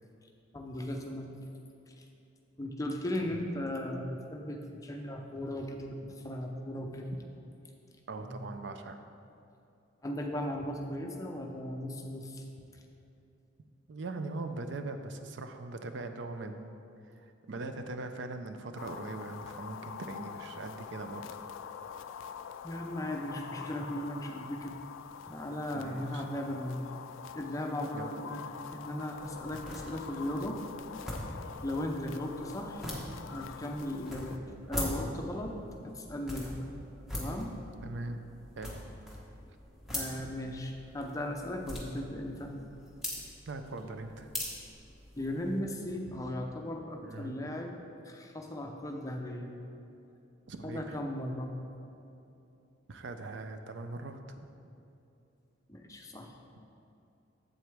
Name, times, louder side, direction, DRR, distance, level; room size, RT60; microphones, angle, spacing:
voice 1, 0.5-1.3 1.9-2.0 2.6-7.2 8.2-8.4 10.0-12.5 12.7-12.8 22.6-24.8 25.3-26.9 27.3-28.4 28.7-30.6 31.6-32.9 33.3-35.6 35.8-36.7 37.1-37.6 39.9-42.5 45.2-47.8 48.0-49.6 50.6-51.5 55.7-56.3, left 1 dB, 15° left, 2 dB, 0.6 m, -37 dB
voice 2, 8.1-9.0 13.9-16.7 17.2-21.3 25.7-26.2 27.9-28.1 37.8-38.2 38.6-38.7 43.5-44.3 47.0-47.4 50.5-51.0 52.9-54.5, right 2 dB, 70° right, 7 dB, 0.5 m, -41 dB
sound 1, 18.8-34.4, left 7 dB, 85° left, 0.3 m, -45 dB
sound 2, 29.1-45.6, left 1 dB, ahead, 1.1 m, -42 dB
7.8 x 7.8 x 3.4 m, 2.7 s
head